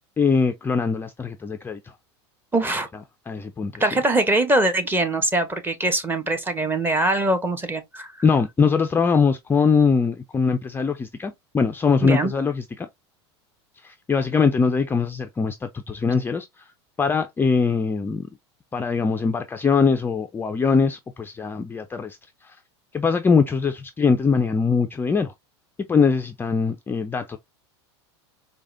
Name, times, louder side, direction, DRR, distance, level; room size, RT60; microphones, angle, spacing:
voice 1, 0.2-1.9 3.3-3.9 8.2-12.9 13.8-16.7 17.0-18.3 18.7-22.6 22.9-25.3 25.9-27.4, left 5 dB, 15° left, 0.3 m, -22 dB
voice 2, 2.5-2.9 3.8-8.1 12.0-12.3, right 2 dB, 15° right, 0.8 m, -22 dB
4.7 x 2.2 x 2.5 m
hypercardioid pair, 100°, 14 cm